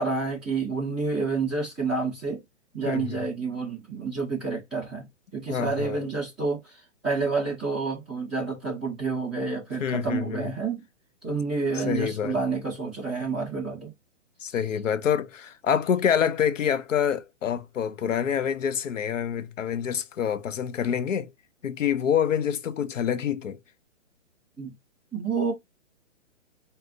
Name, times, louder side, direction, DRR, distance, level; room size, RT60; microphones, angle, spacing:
voice 1, 0.0-2.4 2.7-5.1 5.3-6.8 7.0-10.8 11.2-13.9 24.6-24.7 25.1-25.5, right 4 dB, ahead, 0.8 m, -29 dB
voice 2, 2.9-3.2 5.5-6.0 9.8-10.5 11.7-12.4 14.4-21.3 21.6-23.6, left 8 dB, 90° left, 0.7 m, -27 dB
4.5 x 2.0 x 3.9 m
hypercardioid pair, 175°, 37 cm